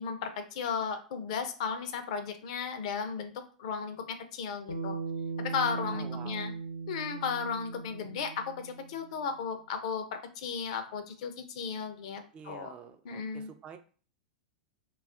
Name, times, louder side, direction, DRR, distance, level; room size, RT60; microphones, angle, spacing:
voice 1, 0.0-3.3 3.6-5.0 5.4-6.5 6.9-12.7 13.0-13.5, left 6 dB, 60° left, 7 dB, 0.5 m, -35 dB
Bass guitar, 4.7-9.1, right 4 dB, 85° left, 0.9 m, -38 dB
voice 2, 5.7-6.5 8.0-8.2 12.3-13.8, right 7 dB, 30° right, 7 dB, 0.4 m, -48 dB
2.3 x 2.0 x 3.6 m, 0.39 s
hypercardioid pair, 95°, 4 cm